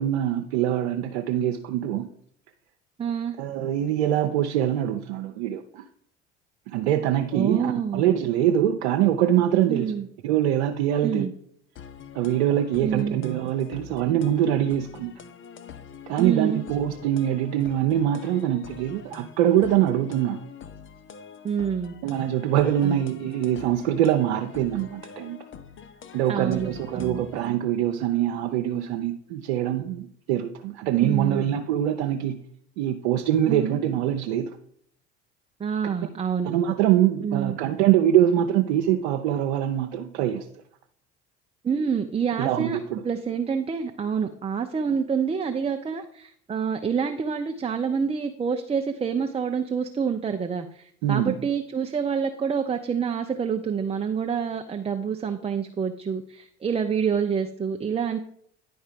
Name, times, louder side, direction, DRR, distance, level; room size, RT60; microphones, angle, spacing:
voice 1, 0.0-2.1 3.4-5.8 6.7-9.9 10.2-11.3 12.1-15.1 16.1-20.4 22.0-25.4 26.1-32.4 32.8-34.5 36.4-40.4 42.4-43.0 51.0-51.3, right 11 dB, 75° right, 4 dB, 0.7 m, -24 dB
voice 2, 3.0-3.4 7.3-8.0 9.7-10.1 11.0-11.3 12.8-13.2 16.2-16.6 21.4-22.0 22.8-23.0 26.3-27.2 31.0-31.4 33.4-33.8 35.6-36.5 37.2-37.6 41.6-42.8 43.0-58.2, right 6 dB, 20° right, 5 dB, 0.6 m, -27 dB
sound 1, 11.8-27.5, left 7 dB, 35° left, 0.8 m, -44 dB
10.0 x 4.4 x 5.1 m, 0.66 s
hypercardioid pair, 70°, 34 cm